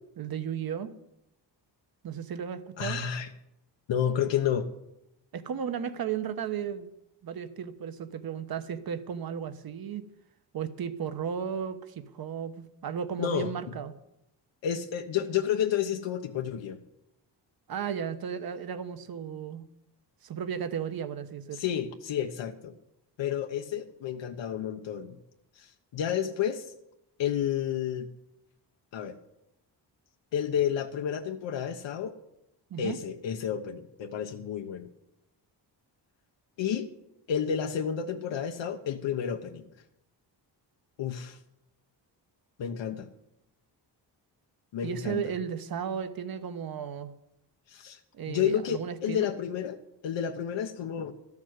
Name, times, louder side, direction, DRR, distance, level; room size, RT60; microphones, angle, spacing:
voice 1, 0.2-0.9 2.0-3.0 5.3-6.9 7.2-10.0 10.5-13.9 17.7-19.6 20.2-21.6 32.7-33.0 44.8-47.1 48.1-49.3, right 8 dB, 55° right, 11 dB, 1.1 m, -34 dB
voice 2, 2.8-3.3 3.9-4.7 13.2-13.5 14.6-16.8 21.5-22.7 23.2-25.2 25.6-26.7 27.2-28.1 28.9-29.2 30.3-32.1 32.8-34.9 36.6-36.9 37.3-39.7 41.0-41.4 42.6-43.1 44.7-45.2 47.7-48.0 48.3-49.8 50.0-51.1, left 9 dB, 90° left, 4 dB, 1.1 m, -30 dB
13.5 x 7.2 x 9.5 m, 0.84 s
wide cardioid pair, 160°, 43 cm